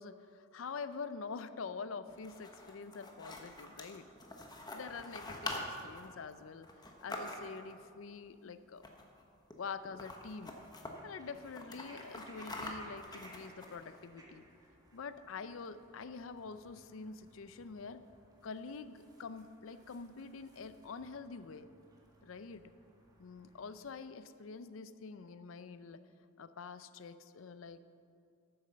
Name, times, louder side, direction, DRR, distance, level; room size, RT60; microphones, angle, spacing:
voice 1, 0.0-4.1 4.7-8.8 9.6-10.5 11.0-14.4 14.9-18.1 18.4-21.7 22.2-22.6 23.2-26.0 26.4-27.8, left 5 dB, 75° left, 12 dB, 0.5 m, -46 dB
sound 1, 2.1-7.7 8.7-9.2 9.5-9.6 9.8-10.9 11.3-14.0, left 2 dB, 20° left, 1.1 m, -45 dB
sound 2, 10.9-24.0, right 1 dB, 20° right, 1.7 m, -63 dB
9.7 x 8.9 x 6.7 m, 2.4 s
head